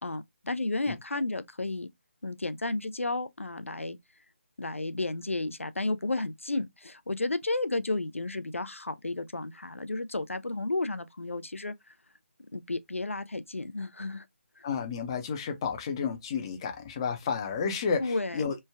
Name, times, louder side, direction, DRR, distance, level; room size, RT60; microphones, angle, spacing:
voice 1, 0.0-1.9 2.2-4.0 4.6-11.7 12.5-14.2 14.6-14.7 18.0-18.4, left 2 dB, 90° left, 0.4 m, -32 dB
voice 2, 14.6-18.6, left 6 dB, 25° left, 0.5 m, -31 dB
3.2 x 2.1 x 3.3 m
figure-of-eight pair, 150°, 7 cm